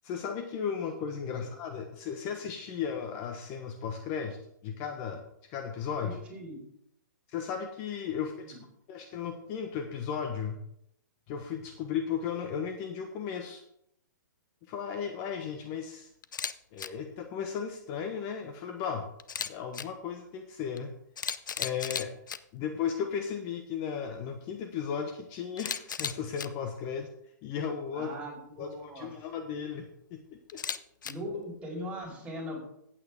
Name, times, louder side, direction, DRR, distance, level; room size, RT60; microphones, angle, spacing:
voice 1, 0.0-5.2 5.5-6.2 7.3-8.6 8.9-10.6 11.3-13.6 14.7-16.1 16.7-19.1 19.5-20.9 21.6-22.2 22.5-27.1 27.4-28.1 28.6-30.6, left 7 dB, 35° left, 5 dB, 1.2 m, -35 dB
voice 2, 6.0-6.6 8.4-8.6 27.9-29.1 31.0-32.6, equal, 10° right, -3 dB, 4.8 m, -40 dB
Camera, 16.2-16.5 16.8-16.9 19.2-19.8 20.8-20.9 21.2-22.4 25.6-26.5 30.5-31.1, left 7 dB, 75° left, 0.7 m, -34 dB
15.0 x 8.7 x 3.6 m, 0.75 s
hypercardioid pair, 135°, 10 cm